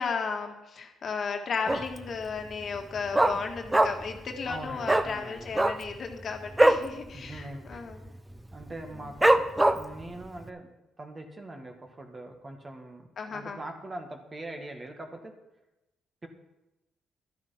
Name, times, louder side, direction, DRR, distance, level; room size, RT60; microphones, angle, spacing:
voice 1, 0.0-8.1 13.2-13.6, left 5 dB, 50° left, 4 dB, 1.7 m, -34 dB
Dog, 1.7-2.1 2.4-2.5 2.7-4.2 4.4-4.6 4.8-5.1 5.5-6.9 7.2-7.4 7.7-8.1 8.5-8.6 9.2-10.0 10.5-10.6, right 1 dB, 15° right, 0.7 m, -22 dB
voice 2, 4.5-5.5 7.1-7.9 8.5-10.7 11.0-15.3 16.2-16.3, right 2 dB, 30° right, 4 dB, 1.9 m, -42 dB
12.0 x 9.3 x 5.9 m, 0.97 s
cardioid pair, 90°, 0 cm